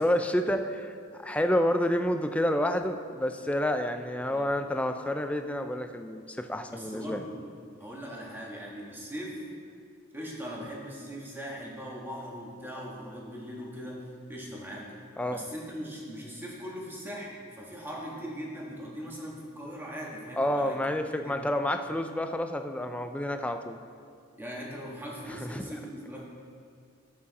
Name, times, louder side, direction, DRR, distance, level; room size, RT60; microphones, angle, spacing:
voice 1, 0.0-7.2 15.2-15.4 20.4-23.8 25.3-25.6, left 1 dB, 5° left, 6 dB, 0.4 m, -29 dB
voice 2, 6.7-7.4 7.8-9.4 10.1-14.9 15.3-20.9 21.2-21.4 24.4-26.2, equal, 10° right, -4 dB, 1.6 m, -40 dB
12.0 x 8.5 x 4.1 m, 2.3 s
head